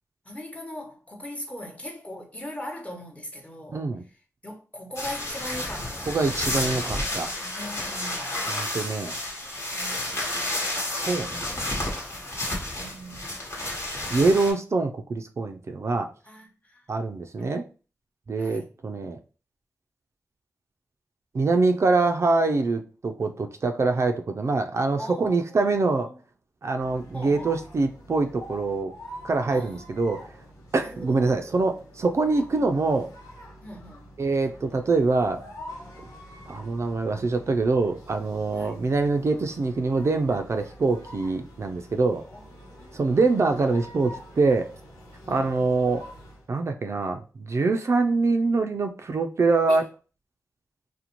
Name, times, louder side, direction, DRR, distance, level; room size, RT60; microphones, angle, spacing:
voice 1, 0.2-3.9 4.4-6.6 7.4-8.4 9.8-10.1 12.8-13.3 16.2-16.9 17.4-17.6 18.4-18.7 25.0-26.1 27.1-27.5 29.5-29.9 30.8-31.5 32.5-32.6 33.6-34.1 38.5-38.7 42.2-42.5 42.8-43.2 45.2-45.8 49.7-49.9, left 1 dB, 20° left, 0.9 m, -40 dB
voice 2, 3.7-4.0 6.1-7.3 8.5-9.1 10.9-11.5 14.1-16.1 16.9-17.6 18.3-19.2 21.3-26.1 26.6-28.9 29.2-30.3 30.7-33.1 34.2-35.4 36.5-42.2 42.9-44.7 45.3-46.0 46.5-49.8, right 3 dB, 50° right, 0.4 m, -24 dB
sound 1, 5.0-14.5, left 1 dB, 50° left, 1.1 m, -31 dB
sound 2, 26.8-46.5, equal, 90° left, 0.8 m, -46 dB
2.5 x 2.1 x 2.9 m
cardioid pair, 45°, 6 cm